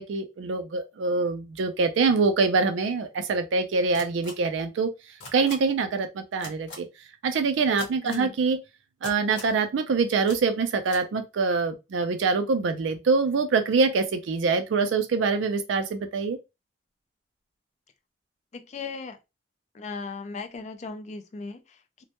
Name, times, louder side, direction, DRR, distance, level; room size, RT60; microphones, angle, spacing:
voice 1, 0.0-4.9 5.3-6.9 7.2-8.6 9.0-16.4, right 4 dB, 85° right, 0.4 m, -24 dB
sound 1, 3.9-4.3 5.2-5.5 6.4-6.8 7.8-8.2 9.0-9.5 10.3-10.4 10.8-11.0, left 3 dB, 75° left, 0.9 m, -40 dB
voice 2, 8.0-8.3 18.5-19.2 19.7-22.0, left 4 dB, 40° left, 0.3 m, -37 dB
2.1 x 2.1 x 2.8 m
head